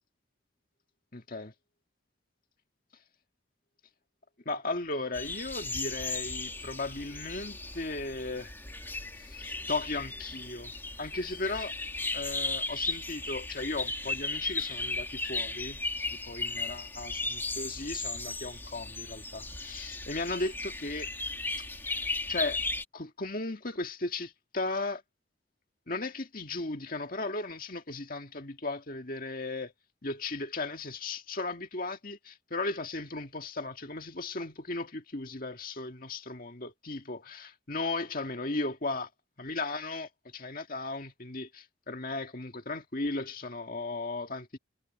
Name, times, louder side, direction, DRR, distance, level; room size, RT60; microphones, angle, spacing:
voice 1, 1.1-1.5 4.5-8.5 9.2-10.7 11.0-11.7 12.1-15.8 16.3-21.1 22.3-22.6 22.9-25.0 25.9-29.7 30.0-39.1 39.4-44.6, left 2 dB, 45° left, 2.0 m, -36 dB
sound 1, 5.1-22.8, left 2 dB, 10° left, 2.4 m, -36 dB
head